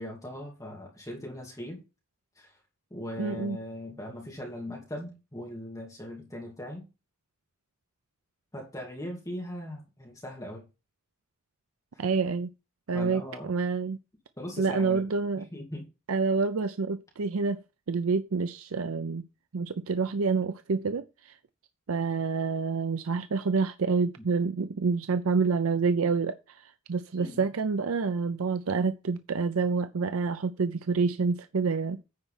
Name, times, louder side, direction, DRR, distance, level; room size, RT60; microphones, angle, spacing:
voice 1, 0.0-1.8 2.4-2.5 2.9-6.8 8.5-10.6 12.0-12.1 12.9-13.5 14.4-15.8 24.2-24.3 27.2-27.4, left 1 dB, 15° left, 2.6 m, -39 dB
voice 2, 3.2-3.6 12.0-12.5 12.9-14.0 14.6-15.4 16.1-17.6 17.9-19.2 19.5-21.4 21.9-32.0, right 4 dB, 90° right, 0.6 m, -28 dB
9.7 x 4.6 x 5.7 m
head